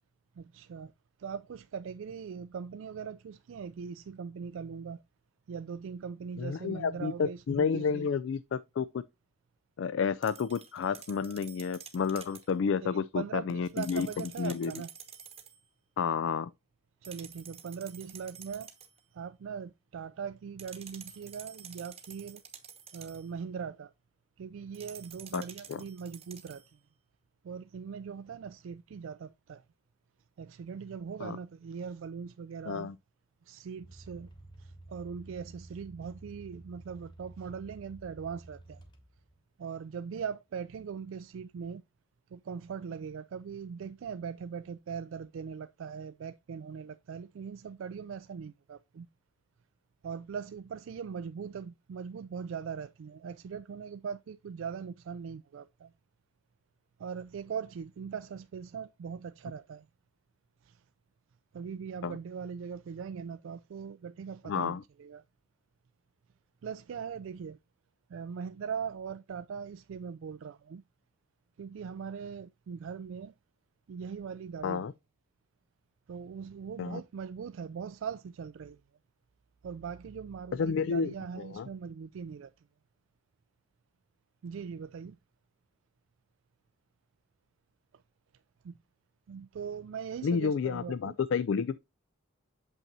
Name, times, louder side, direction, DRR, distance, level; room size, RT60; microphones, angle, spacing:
voice 1, 0.4-0.9 1.2-5.0 5.5-8.1 12.8-14.9 17.0-18.7 19.1-22.4 22.9-23.9 24.4-26.6 27.4-29.6 30.4-32.9 33.5-34.3 34.6-38.8 39.6-41.8 42.3-49.1 50.0-55.9 57.0-59.9 60.6-60.8 61.5-65.2 66.6-67.6 68.1-70.8 71.6-73.3 73.9-74.9 76.1-78.8 79.6-82.5 84.4-85.2 88.6-88.8 89.3-91.2, right 6 dB, 70° right, 0.3 m, -40 dB
voice 2, 6.4-9.0 9.8-14.1 14.4-14.7 16.0-16.5 25.3-25.4 25.7-25.8 31.2-31.4 32.7-33.0 62.0-62.2 64.4-64.8 74.6-74.9 76.8-77.0 80.5-81.7 90.2-91.8, left 6 dB, 65° left, 0.3 m, -30 dB
sound 1, 10.2-12.5 13.6-15.6 17.0-19.0 20.6-23.3 24.7-26.7, right 8 dB, 30° right, 0.9 m, -50 dB
sound 2, 33.8-39.4, right 2 dB, 20° left, 1.1 m, -51 dB
7.2 x 5.5 x 2.7 m
head